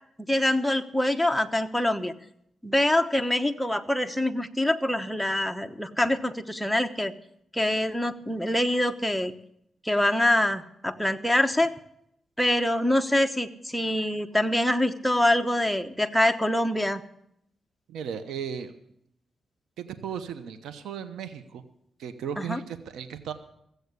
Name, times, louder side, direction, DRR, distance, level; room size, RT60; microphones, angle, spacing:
voice 1, 0.3-2.1 2.6-7.1 7.5-9.3 9.8-11.7 12.4-17.0 22.4-22.6, left 1 dB, ahead, 6 dB, 1.0 m, -25 dB
voice 2, 17.9-18.7 19.8-21.6 22.0-23.3, right 7 dB, 90° right, 10 dB, 0.9 m, -36 dB
15.5 x 8.0 x 8.1 m, 0.75 s
cardioid pair, 75°, 0 cm